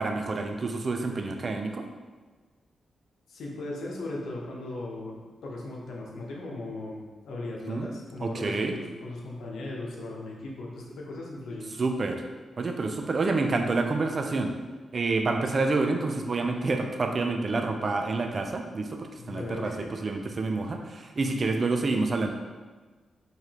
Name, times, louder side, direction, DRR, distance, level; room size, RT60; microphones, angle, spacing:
voice 1, 0.0-1.9 7.7-7.9 8.2-8.7 11.8-12.2 12.6-14.5 14.9-22.3, right 3 dB, 40° right, 4 dB, 0.4 m, -28 dB
voice 2, 3.3-11.7 19.2-19.9, left 2 dB, 90° left, -2 dB, 0.8 m, -38 dB
4.8 x 3.2 x 2.9 m, 1.3 s
cardioid pair, 110°, 0 cm